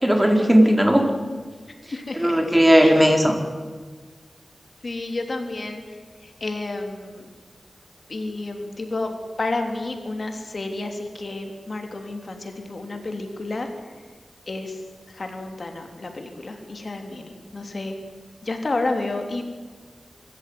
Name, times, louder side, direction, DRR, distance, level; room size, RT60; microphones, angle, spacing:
voice 1, 0.0-1.0 2.1-3.3, equal, 10° right, 3 dB, 4.0 m, -16 dB
voice 2, 1.9-3.0 4.8-5.8 6.2-7.3 8.1-9.1 9.4-13.7 14.5-18.0 18.4-19.4, left 2 dB, 55° left, 4 dB, 3.5 m, -31 dB
25.5 x 14.5 x 9.7 m, 1.4 s
wide cardioid pair, 75°, 0 cm